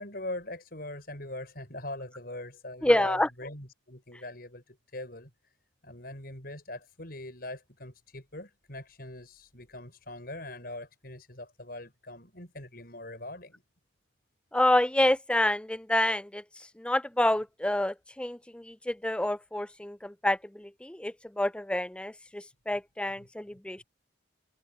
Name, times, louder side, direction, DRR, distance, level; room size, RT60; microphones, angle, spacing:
voice 1, 0.0-5.5 5.8-13.6 23.2-23.3, left 1 dB, 50° left, 6.7 m, -42 dB
voice 2, 2.8-3.3 14.5-16.4 16.8-23.8, left 1 dB, 5° left, 0.4 m, -28 dB
head